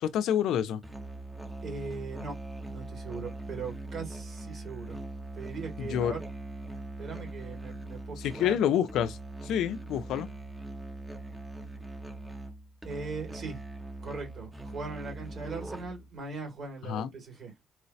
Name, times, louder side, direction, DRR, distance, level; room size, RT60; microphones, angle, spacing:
voice 1, 0.0-0.8 5.8-6.1 8.2-9.2 9.4-10.3 16.8-17.1, left 9 dB, 85° left, 0.4 m, -28 dB
Musical instrument, 0.8-16.1, right 2 dB, 10° right, 0.7 m, -41 dB
voice 2, 1.6-2.3 2.7-5.0 5.3-6.2 7.0-8.6 12.8-13.6 14.0-17.5, right 4 dB, 55° right, 2.2 m, -40 dB
4.7 x 2.0 x 2.7 m
cardioid pair, 90°, 0 cm